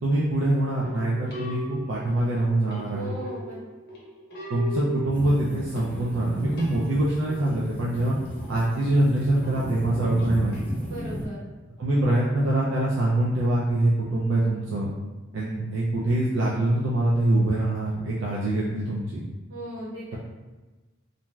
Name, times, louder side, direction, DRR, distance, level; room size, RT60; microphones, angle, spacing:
voice 1, 0.0-3.1 4.5-8.2 8.5-10.7 11.8-14.9 15.3-19.3, right 1 dB, 65° right, -6 dB, 0.4 m, -24 dB
sound 1, 0.8-10.6, right 1 dB, 55° left, 0.7 m, -39 dB
voice 2, 2.9-3.6 10.9-11.4 19.5-20.2, right 1 dB, 90° right, -8 dB, 1.2 m, -37 dB
sound 2, 5.1-11.3, equal, 10° left, 0.4 m, -35 dB
2.6 x 2.2 x 3.0 m, 1.2 s
head